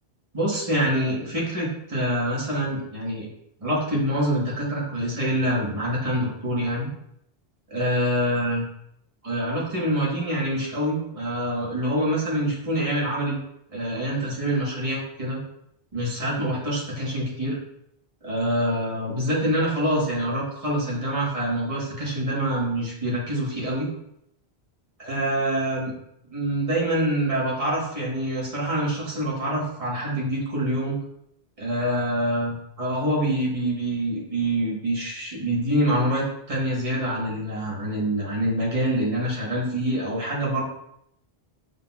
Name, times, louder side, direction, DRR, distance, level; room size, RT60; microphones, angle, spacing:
voice 1, 0.3-3.3 3.6-6.9 7.7-8.6 9.2-13.4 13.7-15.4 15.9-17.6 18.2-23.9 25.0-25.9 26.3-31.0 31.6-40.6, right 1 dB, 35° right, -5 dB, 1.3 m, -25 dB
5.6 x 3.6 x 2.3 m, 0.75 s
omnidirectional pair, 1.0 m